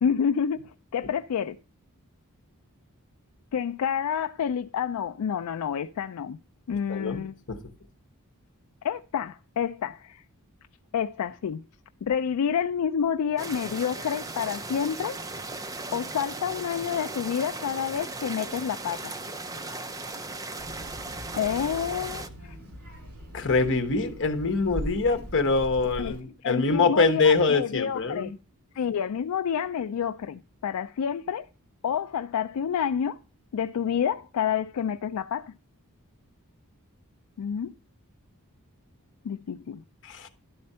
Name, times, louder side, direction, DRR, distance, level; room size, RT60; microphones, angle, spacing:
voice 1, 0.0-1.6 3.5-6.4 6.7-7.3 8.8-10.2 10.9-11.6 12.0-15.2 15.9-19.1 21.4-22.6 26.0-26.1 26.4-28.4 28.7-31.5 31.8-33.2 33.5-35.5 37.4-37.7 39.2-39.8, left 8 dB, 85° left, 0.4 m, -29 dB
voice 2, 6.9-7.2 7.5-7.6 23.3-28.3 40.0-40.3, left 4 dB, 55° left, 1.1 m, -24 dB
sound 1, 13.4-22.3, right 3 dB, 15° right, 0.5 m, -37 dB
Child speech kid speaking, 20.6-26.2, equal, 65° right, 2.7 m, -40 dB
11.5 x 4.3 x 5.5 m
head